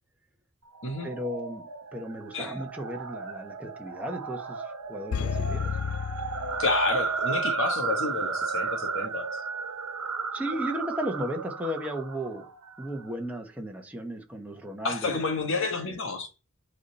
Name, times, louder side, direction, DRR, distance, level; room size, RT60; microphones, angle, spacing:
sound 1, 0.7-13.2, right 5 dB, 85° right, 1.2 m, -34 dB
voice 1, 1.0-5.7 10.3-12.4 12.8-15.2, equal, 5° right, 1.3 m, -35 dB
sound 2, 5.1-7.3 7.6-7.7, left 7 dB, 80° left, 0.4 m, -32 dB
voice 2, 6.6-9.4 14.8-16.3, left 3 dB, 65° left, 1.6 m, -29 dB
8.6 x 4.3 x 6.8 m
head